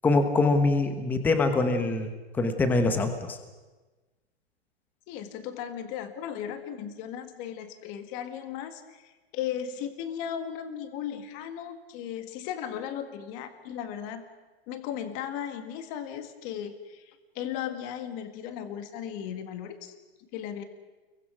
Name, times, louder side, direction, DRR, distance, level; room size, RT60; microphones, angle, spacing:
voice 1, 0.0-3.4, left 3 dB, 5° left, 7 dB, 1.1 m, -24 dB
voice 2, 5.1-14.2 14.7-19.9 20.3-20.6, left 9 dB, 25° left, 9 dB, 1.8 m, -36 dB
29.0 x 23.0 x 6.2 m, 1.2 s
hypercardioid pair, 170°, 33 cm